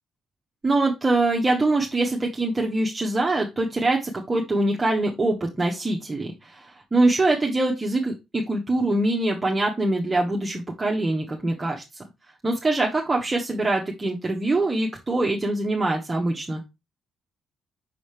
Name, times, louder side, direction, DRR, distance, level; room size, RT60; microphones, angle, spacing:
voice 1, 0.6-11.8 12.4-16.6, right 2 dB, 20° right, -1 dB, 1.2 m, -24 dB
5.8 x 5.0 x 3.3 m, 0.23 s
cardioid pair, 90°, 0 cm